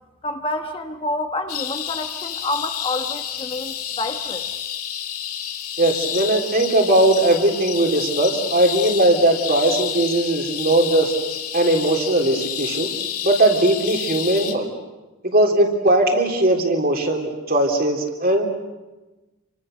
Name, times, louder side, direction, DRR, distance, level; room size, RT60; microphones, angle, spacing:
voice 1, 0.2-4.5, left 2 dB, 25° left, 5 dB, 1.3 m, -28 dB
sound 1, 1.5-14.5, left 9 dB, 85° left, 2.4 m, -30 dB
voice 2, 5.8-11.1 11.5-12.9 13.2-14.7 15.2-18.5, right 1 dB, 40° right, 2 dB, 3.5 m, -19 dB
29.5 x 24.5 x 6.7 m, 1.1 s
head